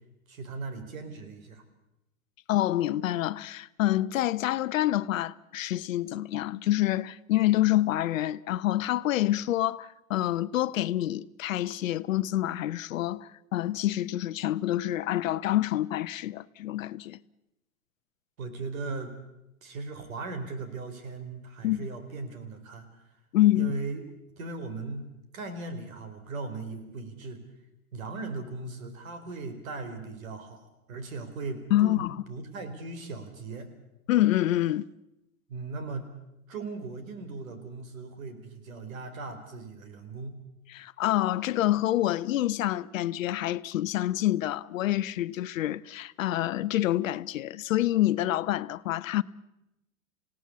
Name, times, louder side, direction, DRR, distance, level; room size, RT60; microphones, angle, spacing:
voice 1, 0.3-1.6 18.4-19.1 19.6-22.9 23.5-24.0 24.4-25.1 25.3-27.4 27.9-33.7 35.5-36.1 36.5-40.4, right 3 dB, 70° right, 4.7 m, -38 dB
voice 2, 2.5-17.2 21.6-21.9 23.3-23.7 31.7-32.2 34.1-34.9 40.7-49.2, left 14 dB, 65° left, 0.9 m, -27 dB
27.5 x 17.5 x 8.4 m
hypercardioid pair, 110°, 43 cm